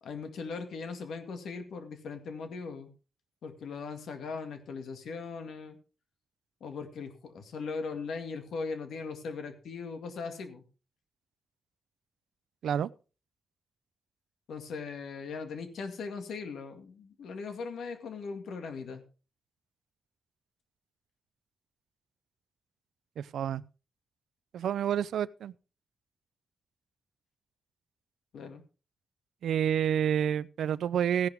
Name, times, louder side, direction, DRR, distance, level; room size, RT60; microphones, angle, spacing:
voice 1, 0.0-2.9 3.4-5.8 6.6-10.6 14.5-19.0 28.3-28.6, left 4 dB, 85° left, 2.0 m, -39 dB
voice 2, 23.2-23.6 24.5-25.5 29.4-31.3, right 9 dB, 90° right, 0.5 m, -29 dB
15.5 x 11.0 x 3.5 m
cardioid pair, 85°, 0 cm